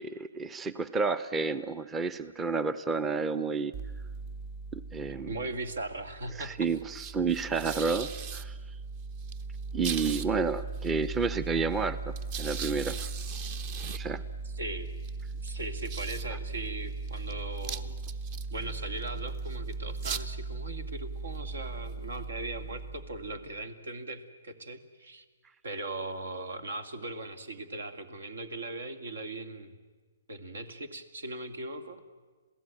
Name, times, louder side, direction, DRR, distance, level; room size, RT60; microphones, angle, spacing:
voice 1, 0.0-3.7 4.7-5.3 6.4-8.6 9.7-13.0 13.9-14.2, right 4 dB, 15° right, 15 dB, 0.6 m, -30 dB
sound 1, 3.7-23.6, right 4 dB, 35° right, 0.9 m, -38 dB
voice 2, 5.2-6.7 14.4-14.9 15.3-18.0 18.5-25.2 25.6-29.7 30.3-32.0, right 2 dB, 80° right, 11 dB, 2.2 m, -39 dB
27.5 x 16.5 x 9.1 m, 1.4 s
hypercardioid pair, 145°, 0 cm